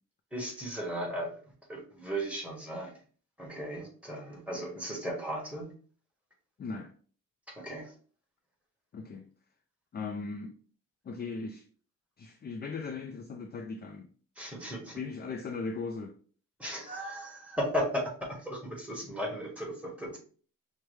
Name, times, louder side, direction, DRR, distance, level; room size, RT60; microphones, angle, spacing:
voice 1, 0.3-1.3 1.7-2.9 3.4-5.7 7.6-7.9 14.4-15.0 16.6-20.2, equal, 5° right, 1.3 m, -36 dB
voice 2, 6.6-6.9 8.9-9.3 9.9-10.5 11.0-11.6 12.2-14.1 14.9-16.2, left 4 dB, 30° left, 0.4 m, -38 dB
6.0 x 2.2 x 3.2 m
cardioid pair, 125°, 34 cm